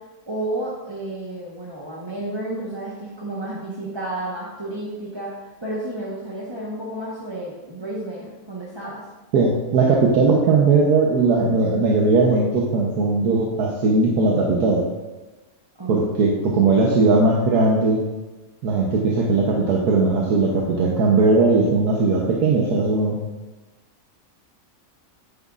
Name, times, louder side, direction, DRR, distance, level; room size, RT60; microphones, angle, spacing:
voice 1, 0.3-5.3 5.6-9.0 15.8-16.7, right 1 dB, 20° right, -6 dB, 1.2 m, -31 dB
voice 2, 9.3-14.8 15.9-18.0 18.6-23.2, right 3 dB, 90° right, -2 dB, 1.5 m, -18 dB
9.7 x 9.4 x 2.5 m, 1.1 s
omnidirectional pair, 1.6 m